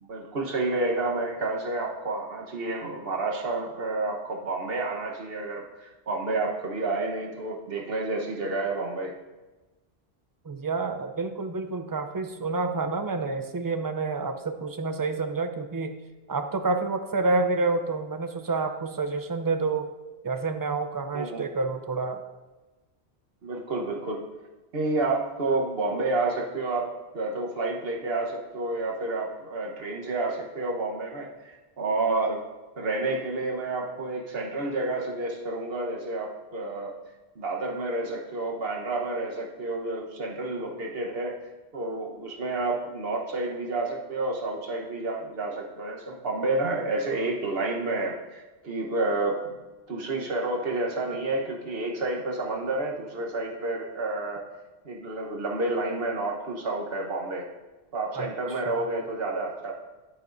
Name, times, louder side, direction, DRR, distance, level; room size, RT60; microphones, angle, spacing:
voice 1, 0.0-9.1 21.1-21.4 23.4-24.2 24.7-32.4 32.8-36.9 37.4-41.4 41.7-49.6 49.9-54.4 54.8-57.5 57.9-59.7, right 2 dB, 65° right, 0 dB, 1.3 m, -30 dB
voice 2, 10.4-16.0 16.3-19.9 20.2-22.2 58.1-58.3 58.7-58.8, right 3 dB, 35° right, 8 dB, 0.3 m, -28 dB
11.5 x 9.0 x 2.6 m, 1.2 s
omnidirectional pair, 1.1 m